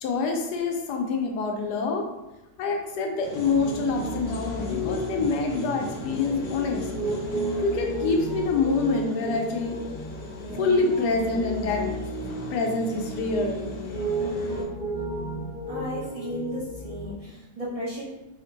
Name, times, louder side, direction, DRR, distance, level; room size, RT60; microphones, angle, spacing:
voice 1, 0.0-2.1 2.6-6.9 7.6-9.8 10.6-11.9 12.5-13.6, left 3 dB, 85° left, 2 dB, 1.2 m, -26 dB
sound 1, 3.2-14.6, left 2 dB, 65° left, 0.9 m, -41 dB
Piano, 3.4-17.1, equal, 40° left, 1.0 m, -33 dB
voice 2, 15.7-18.0, equal, 65° right, -8 dB, 0.3 m, -34 dB
3.3 x 2.1 x 3.8 m, 0.97 s
omnidirectional pair, 1.7 m